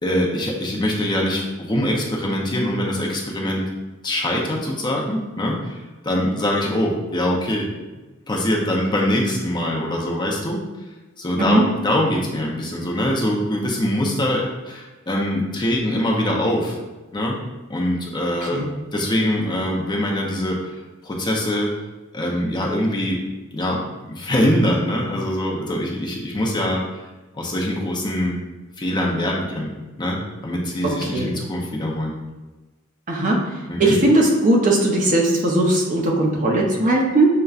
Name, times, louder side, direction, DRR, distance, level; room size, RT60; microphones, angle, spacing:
voice 1, 0.0-3.6 4.0-5.8 6.0-7.7 8.3-10.6 11.2-16.8 17.1-17.4 17.7-18.6 18.9-20.7 21.0-21.7 22.1-23.2 23.5-27.0 27.4-28.4 28.8-29.7 30.0-32.1 33.7-34.0, left 1 dB, 20° left, -2 dB, 0.6 m, -23 dB
voice 2, 33.1-33.4 33.8-37.3, right 1 dB, 40° right, -1 dB, 0.7 m, -18 dB
6.5 x 2.2 x 2.4 m, 1.2 s
head